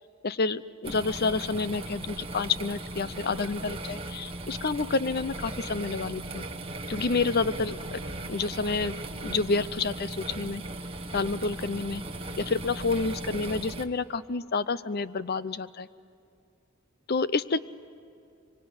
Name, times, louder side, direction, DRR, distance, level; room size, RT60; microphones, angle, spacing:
voice 1, 0.2-6.4 6.9-8.0 8.3-8.9 9.2-10.6 11.1-12.0 12.5-15.9 17.1-17.6, left 4 dB, 50° left, 16 dB, 0.7 m, -29 dB
sound 1, 0.8-13.8, right 2 dB, 25° right, 1.5 m, -38 dB
24.5 x 24.5 x 9.7 m, 2.4 s
head